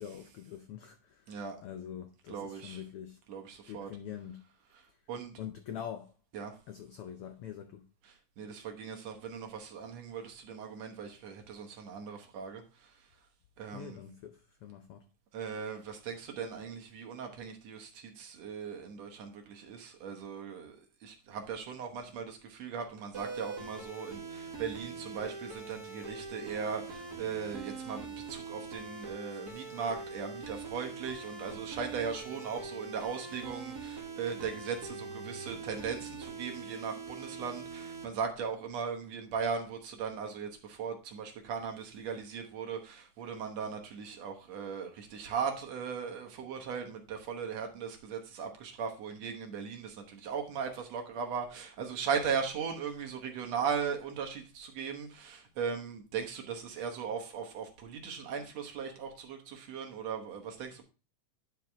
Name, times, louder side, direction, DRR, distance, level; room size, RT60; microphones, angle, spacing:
voice 1, 0.0-3.2 3.7-4.4 5.4-6.1 6.7-7.9 13.7-15.0, left 9 dB, 85° left, 1.2 m, -44 dB
voice 2, 2.3-2.8 3.3-3.9 5.1-5.4 6.3-6.6 8.1-12.9 13.6-14.0 15.3-60.8, right 6 dB, 65° right, 2.2 m, -38 dB
sound 1, 23.1-38.0, right 4 dB, 40° right, 1.7 m, -43 dB
10.5 x 4.8 x 3.4 m
omnidirectional pair, 3.4 m